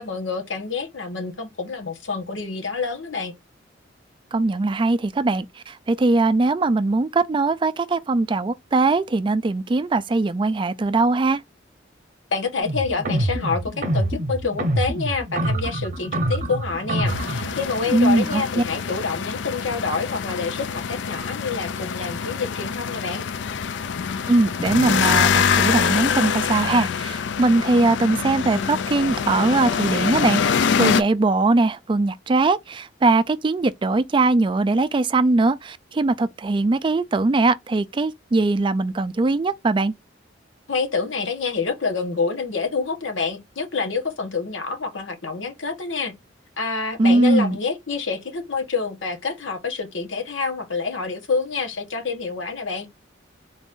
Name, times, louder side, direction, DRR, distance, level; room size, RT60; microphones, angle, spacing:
voice 1, 0.0-3.3 12.3-23.2 40.7-46.1 46.6-52.9, left 4 dB, 90° left, 1.2 m, -27 dB
voice 2, 4.3-11.4 17.9-18.6 24.3-39.9 47.0-47.6, right 3 dB, 25° right, 0.3 m, -21 dB
sound 1, 12.6-17.6, right 1 dB, 40° right, 0.8 m, -26 dB
sound 2, 17.1-31.0, left 6 dB, 65° left, 0.4 m, -24 dB
4.0 x 2.5 x 3.6 m
head